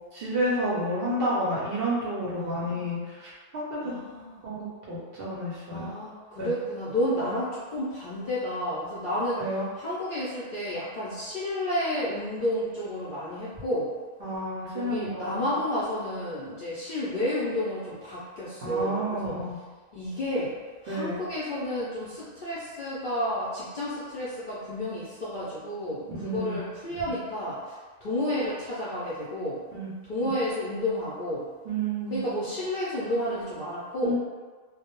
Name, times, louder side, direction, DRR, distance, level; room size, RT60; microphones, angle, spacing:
voice 1, 0.1-3.8 4.4-5.9 6.4-6.5 7.2-7.3 9.4-9.7 14.2-15.5 18.6-19.6 20.9-21.2 26.1-26.6 27.0-27.2 29.7-29.9 30.2-30.3 31.6-32.2 34.0-34.1, right 1 dB, 60° right, -7 dB, 0.7 m, -30 dB
voice 2, 2.4-3.0 3.8-4.4 5.7-9.4 9.8-13.9 14.7-19.3 19.9-20.5 20.8-27.7 28.0-29.6 30.1-31.5 32.1-34.1, left 1 dB, 60° left, -10 dB, 0.5 m, -31 dB
2.2 x 2.0 x 2.9 m, 1.4 s
omnidirectional pair, 1.3 m